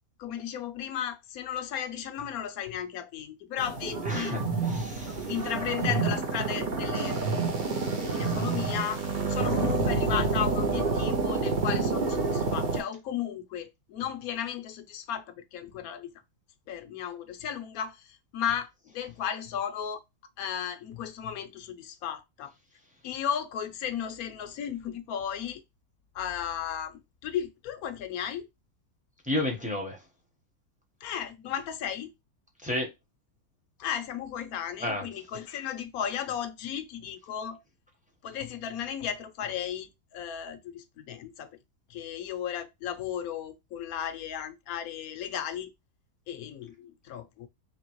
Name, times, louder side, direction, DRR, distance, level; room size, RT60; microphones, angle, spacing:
voice 1, 0.2-4.4 5.3-9.0 9.3-16.1 16.7-20.0 20.4-22.5 23.0-25.6 26.1-28.5 31.0-32.1 33.8-37.6 38.2-41.5 41.9-45.7 46.3-47.5, left 9 dB, 65° left, 1.0 m, -35 dB
sound 1, 3.6-12.8, right 4 dB, 40° right, 0.8 m, -28 dB
voice 2, 4.1-5.3 29.3-30.0 32.6-32.9 34.8-35.0, left 1 dB, 5° right, 0.8 m, -31 dB
4.2 x 3.2 x 3.0 m
omnidirectional pair, 1.8 m